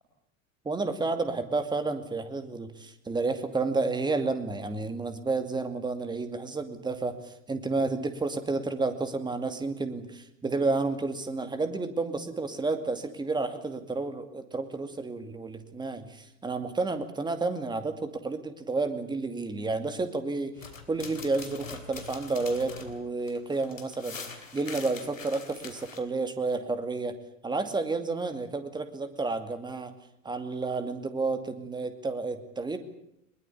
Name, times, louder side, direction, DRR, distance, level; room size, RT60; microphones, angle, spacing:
voice 1, 0.7-20.5 20.9-27.1 27.4-29.9 30.2-32.8, right 3 dB, 10° right, 8 dB, 2.4 m, -31 dB
sound 1, 20.6-26.0, left 5 dB, 80° left, 3.1 m, -43 dB
22.0 x 21.0 x 8.6 m, 0.78 s
figure-of-eight pair, 85°, 39 cm